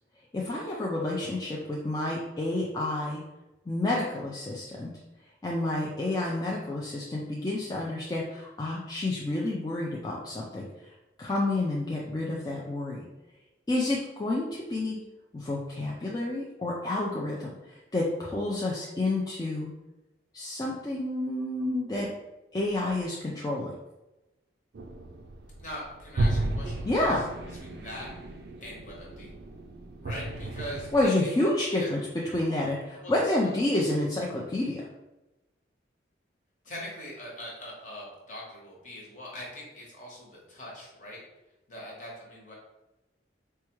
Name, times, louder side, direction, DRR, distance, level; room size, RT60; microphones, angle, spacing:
voice 1, 0.3-3.2 3.7-4.9 5.4-10.7 11.2-13.1 13.7-15.0 15.3-19.7 20.3-22.1 22.5-23.7 26.8-27.2 30.9-32.0 32.3-32.8 33.1-34.8, left 2 dB, 20° left, -4 dB, 0.4 m, -29 dB
sound 1, 24.7-31.1, right 2 dB, 60° right, 0.3 m, -33 dB
voice 2, 25.6-28.1 28.6-29.3 30.0-31.9 32.4-32.7 33.0-33.5 36.6-41.2 41.7-42.5, left 1 dB, 45° left, -4 dB, 1.1 m, -42 dB
4.5 x 2.2 x 3.0 m, 0.99 s
head